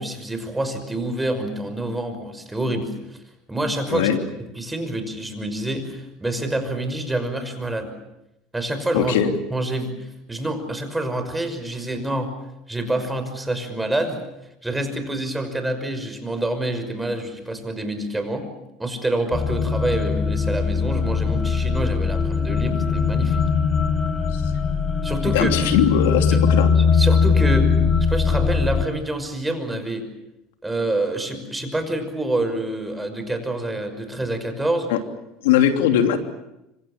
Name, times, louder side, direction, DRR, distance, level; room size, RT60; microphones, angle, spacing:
voice 1, 0.0-3.2 3.5-4.1 4.4-7.9 8.5-9.2 9.5-12.3 12.7-14.2 14.6-18.5 18.8-23.4 25.0-25.6 26.3-26.4 26.8-27.7 28.1-30.0 30.6-34.9, right 1 dB, 10° right, 8 dB, 5.8 m, -27 dB
voice 2, 8.9-9.3 24.3-24.4 25.3-26.7 34.9-35.0 35.4-36.2, left 9 dB, 80° left, 6 dB, 3.0 m, -20 dB
sound 1, 19.3-28.9, left 5 dB, 30° left, 4.0 m, -20 dB
26.0 x 26.0 x 7.4 m, 0.88 s
hypercardioid pair, 85°, 0 cm